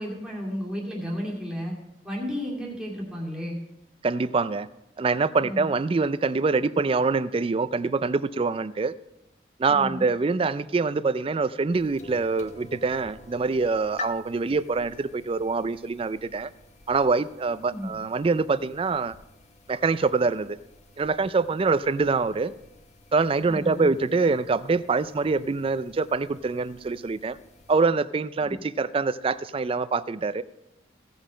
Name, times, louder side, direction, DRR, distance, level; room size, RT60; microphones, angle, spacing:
voice 1, 0.0-1.7 2.0-3.6 5.4-5.7 9.7-10.1 17.7-17.9 23.4-23.9 28.4-28.6, equal, 5° right, 2.3 m, -33 dB
voice 2, 4.0-4.7 5.0-8.9 9.6-16.5 16.9-19.1 19.7-20.6 21.0-22.5 23.1-27.4 27.7-30.4, right 4 dB, 30° right, 0.4 m, -25 dB
sound 1, 11.7-27.8, left 3 dB, 40° left, 0.8 m, -48 dB
16.5 x 5.6 x 5.0 m
head